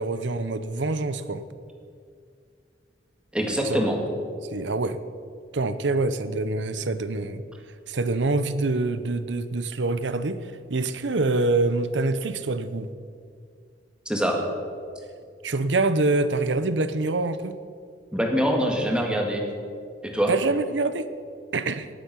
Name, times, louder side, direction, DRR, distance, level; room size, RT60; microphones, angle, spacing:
voice 1, 0.0-1.4 3.6-3.9 4.5-5.0 5.5-7.4 7.9-12.9 15.4-17.6 20.3-21.1 21.5-21.9, right 3 dB, 80° right, 12 dB, 0.8 m, -25 dB
voice 2, 3.3-4.0 14.1-14.4 18.1-19.4 20.0-20.3, equal, 5° right, 1 dB, 1.9 m, -24 dB
19.0 x 8.4 x 5.8 m, 2.3 s
head